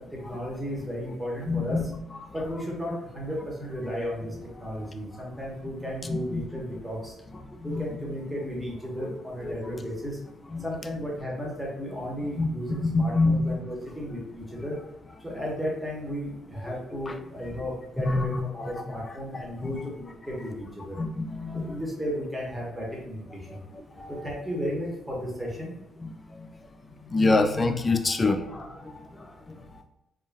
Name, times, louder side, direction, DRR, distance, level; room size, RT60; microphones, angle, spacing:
voice 1, 0.0-1.9 2.3-4.3 4.6-7.1 7.6-10.2 10.6-14.8 15.2-21.0 21.5-23.6 24.1-25.7, equal, 5° right, -4 dB, 0.9 m, -34 dB
voice 2, 1.5-1.9 6.1-6.4 7.6-7.9 9.0-9.1 9.4-9.8 10.5-10.6 12.4-12.5 12.8-13.6 18.1-18.3 19.3-19.4 21.0-21.7 24.0-24.1 26.0-26.1 26.4-26.5 27.1-28.9 29.5-29.6, left 3 dB, 30° left, 5 dB, 0.3 m, -26 dB
2.4 x 2.2 x 3.3 m, 0.91 s
cardioid pair, 90°, 0 cm